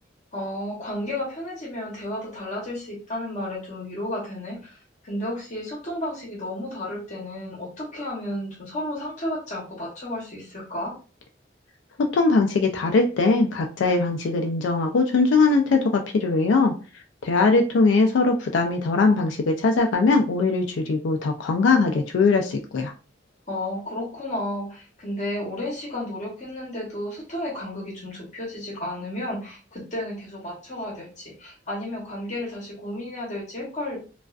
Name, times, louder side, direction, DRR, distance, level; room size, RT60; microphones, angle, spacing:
voice 1, 0.3-10.9 23.5-34.0, left 1 dB, 40° left, -4 dB, 0.9 m, -32 dB
voice 2, 12.1-16.7 17.2-22.9, left 3 dB, 85° left, 3 dB, 0.3 m, -21 dB
2.4 x 2.2 x 2.3 m, 0.35 s
head